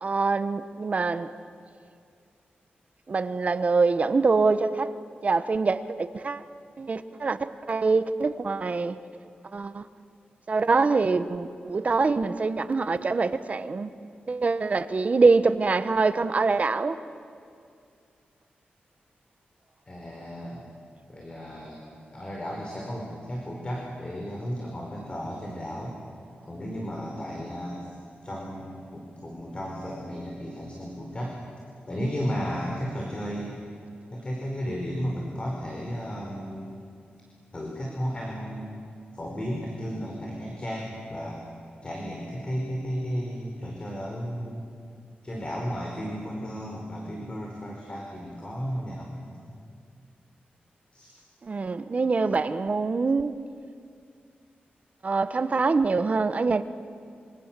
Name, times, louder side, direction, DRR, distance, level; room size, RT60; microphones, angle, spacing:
voice 1, 0.0-1.3 3.1-4.9 5.2-6.4 6.8-9.0 9.5-9.8 10.5-13.9 14.3-17.0 51.4-53.3 55.0-56.6, right 4 dB, 45° right, 12 dB, 1.1 m, -24 dB
voice 2, 19.9-20.7 21.1-21.8 22.1-25.9 26.5-28.0 28.2-31.4 31.9-33.5 34.1-36.8 37.5-38.7 39.1-41.4 41.8-44.6 45.2-49.3 50.9-51.1, equal, 30° left, -1 dB, 5.0 m, -34 dB
27.5 x 26.0 x 7.6 m, 2.3 s
wide cardioid pair, 115°, 3 cm